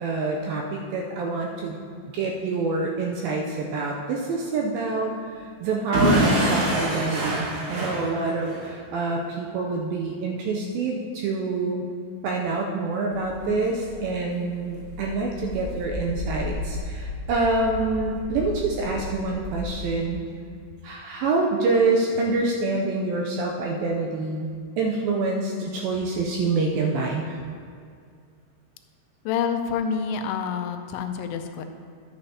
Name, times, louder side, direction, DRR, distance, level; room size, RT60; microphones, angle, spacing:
voice 1, 0.0-1.8 2.1-11.8 12.2-20.2 20.8-24.5 24.8-27.4, right 3 dB, 85° right, -1 dB, 2.1 m, -26 dB
Explosion / Shatter, 5.9-8.7, right 1 dB, 55° right, 2.5 m, -23 dB
sound 1, 13.1-20.1, left 1 dB, 70° right, 2.9 m, -35 dB
voice 2, 29.3-31.7, left 6 dB, 85° left, 6 dB, 2.6 m, -27 dB
11.5 x 8.1 x 2.8 m, 2.2 s
omnidirectional pair, 4.7 m